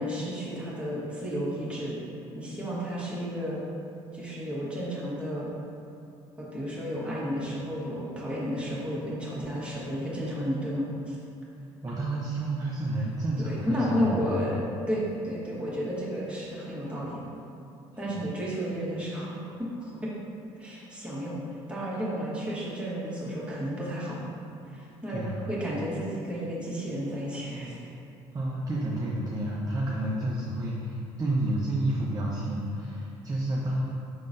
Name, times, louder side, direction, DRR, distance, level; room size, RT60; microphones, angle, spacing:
voice 1, 0.0-2.0 2.3-3.6 4.1-5.5 6.4-11.2 13.4-17.2 18.0-19.4 19.8-20.1 20.6-21.4 21.7-24.2 24.7-27.8, equal, 5° right, -7 dB, 1.4 m, -32 dB
voice 2, 11.8-14.4 18.0-18.2 25.1-25.4 28.3-33.9, right 1 dB, 25° right, -4 dB, 0.6 m, -30 dB
5.4 x 3.7 x 2.6 m, 2.6 s
hypercardioid pair, 60°, 15 cm